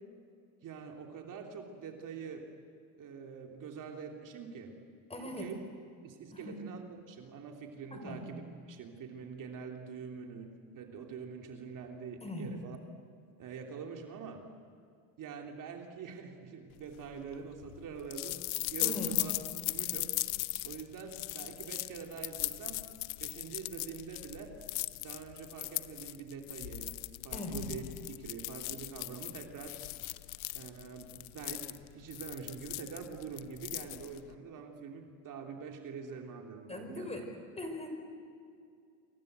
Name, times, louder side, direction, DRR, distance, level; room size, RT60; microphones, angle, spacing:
voice 1, 0.6-2.5 3.0-4.7 5.2-5.6 6.0-12.8 13.4-14.4 15.2-18.4 18.7-19.4 19.7-20.1 20.6-22.8 23.2-24.5 25.0-29.8 30.5-37.3, right 6 dB, 50° right, 3 dB, 3.3 m, -45 dB
voice 2, 5.1-5.5 6.3-6.5 7.9-8.2 12.2-12.5 18.8-19.1 27.3-27.6 36.7-37.2 37.6-37.9, left 2 dB, 15° left, 5 dB, 5.6 m, -40 dB
sound 1, 16.9-34.3, left 22 dB, 85° left, 0.9 m, -39 dB
28.0 x 23.5 x 8.2 m, 2.3 s
supercardioid pair, 105°, 42 cm